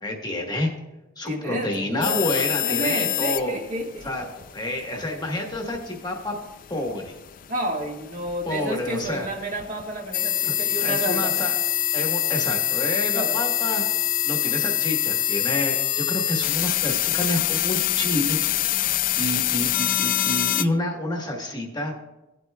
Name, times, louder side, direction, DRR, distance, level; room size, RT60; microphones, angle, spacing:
voice 1, 0.0-0.7 1.2-3.6 4.0-6.3 6.7-7.1 8.5-9.3 10.4-11.5 11.9-13.8 14.2-18.4 19.2-21.9, left 1 dB, 20° left, 1 dB, 1.2 m, -29 dB
voice 2, 1.2-4.1 7.5-11.4 13.1-13.8, right 1 dB, 40° right, 0 dB, 1.5 m, -31 dB
sound 1, 2.0-20.7, left 13 dB, 40° left, 0.3 m, -26 dB
17.0 x 8.1 x 2.2 m, 1.0 s
head